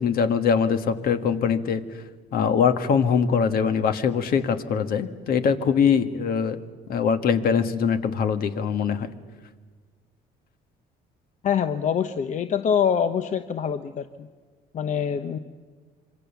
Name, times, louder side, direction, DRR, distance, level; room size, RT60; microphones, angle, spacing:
voice 1, 0.0-2.0 2.3-6.6 6.9-9.1, left 6 dB, 60° left, 9 dB, 1.6 m, -22 dB
voice 2, 11.4-14.3 14.7-15.4, left 7 dB, 45° left, 10 dB, 0.9 m, -25 dB
26.5 x 24.5 x 7.1 m, 1.5 s
cardioid pair, 110°, 17 cm